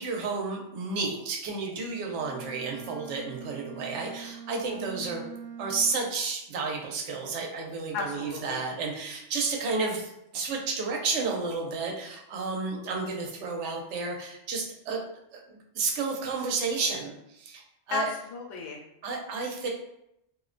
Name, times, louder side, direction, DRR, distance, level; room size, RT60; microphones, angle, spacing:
voice 1, 0.0-5.2 5.6-15.0 15.3-17.6 17.9-18.1 19.0-19.7, right 4 dB, 75° right, 0 dB, 0.9 m, -31 dB
Bowed string instrument, 2.0-6.1, right 7 dB, 35° left, 0.3 m, -43 dB
voice 2, 7.9-8.6 17.9-18.0 18.3-18.8, left 5 dB, 90° left, 0 dB, 1.0 m, -33 dB
2.5 x 2.1 x 2.5 m, 0.80 s
omnidirectional pair, 1.2 m